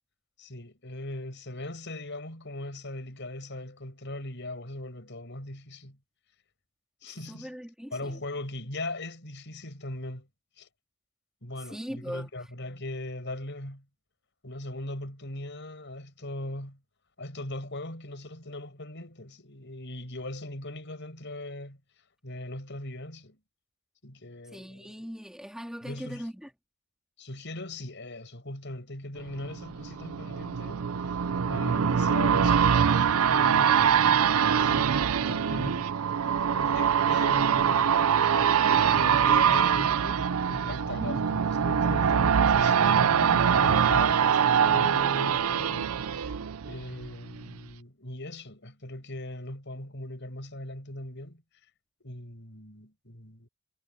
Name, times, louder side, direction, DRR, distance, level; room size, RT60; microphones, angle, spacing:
voice 1, 0.4-6.0 7.0-7.5 7.9-10.3 10.6-10.7 11.4-13.8 14.4-16.8 17.2-21.8 22.2-23.4 24.0-24.9 25.8-26.2 27.2-30.9 31.4-38.0 38.4-46.4 46.6-51.4 52.0-53.5, left 1 dB, 50° left, 6.7 m, -39 dB
voice 2, 7.1-8.2 11.7-12.3 24.5-26.5 41.0-41.2, equal, 5° right, 3.1 m, -40 dB
sound 1, 29.3-47.1 47.5-47.6, right 7 dB, 75° right, 0.5 m, -24 dB
head